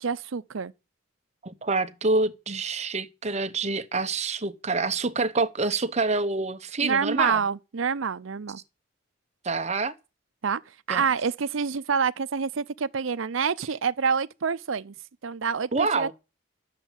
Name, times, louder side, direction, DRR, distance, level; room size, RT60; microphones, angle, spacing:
voice 1, 0.0-0.7 6.8-8.6 10.4-10.6 10.9-14.9 15.2-16.1, right 6 dB, 70° right, 0.6 m, -27 dB
voice 2, 1.4-7.4 9.4-9.9 10.9-11.1 15.7-16.1, right 3 dB, 35° right, 0.9 m, -27 dB
12.0 x 7.2 x 7.3 m
head